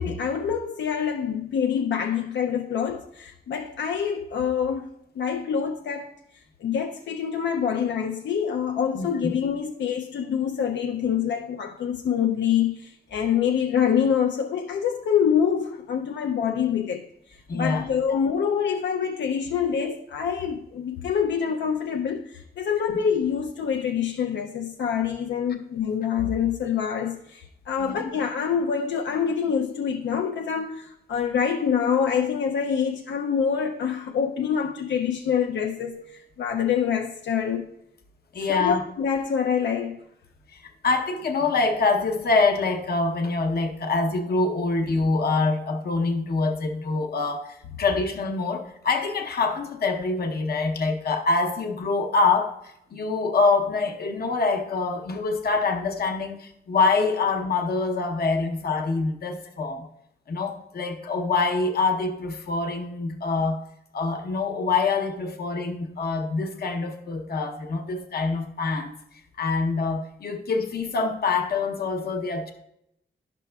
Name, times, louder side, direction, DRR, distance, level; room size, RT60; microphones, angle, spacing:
voice 1, 0.0-4.9 5.2-37.7 38.5-40.0, left 7 dB, 80° left, 0.4 m, -26 dB
voice 2, 8.9-9.3 17.5-18.2 27.8-28.1 38.3-38.8 40.5-59.9 60.3-63.6 63.9-68.9 69.4-72.5, left 3 dB, 60° left, 0.8 m, -25 dB
11.5 x 6.0 x 2.3 m
wide cardioid pair, 165°, 19 cm